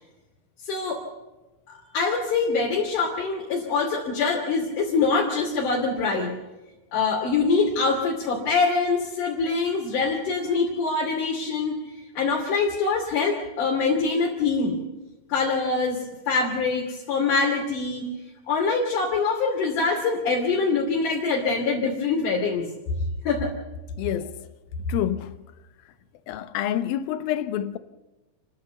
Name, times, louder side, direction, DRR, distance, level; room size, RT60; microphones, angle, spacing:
voice 1, 0.6-1.0 1.7-6.3 6.9-11.8 12.2-14.8 15.3-16.0 16.3-18.0 18.5-22.7 23.2-23.5, left 4 dB, 60° left, 4.1 m, -24 dB
voice 2, 24.0-24.5 24.9-25.4 26.3-27.8, left 11 dB, 80° left, 2.7 m, -28 dB
29.5 x 13.5 x 6.9 m
omnidirectional pair, 4.3 m